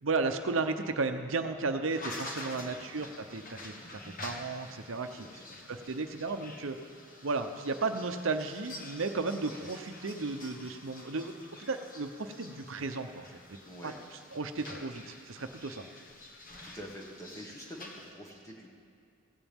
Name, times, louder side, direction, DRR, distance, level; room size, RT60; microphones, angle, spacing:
voice 1, 0.0-5.3 5.7-6.8 7.2-13.4 13.8-13.9 14.3-15.9, right 3 dB, 75° right, 7 dB, 0.7 m, -34 dB
sound 1, 1.9-18.1, left 2 dB, 40° left, 1.5 m, -48 dB
voice 2, 13.6-14.0 16.6-18.8, equal, 15° left, -1 dB, 1.7 m, -47 dB
16.5 x 16.0 x 3.6 m, 2.4 s
head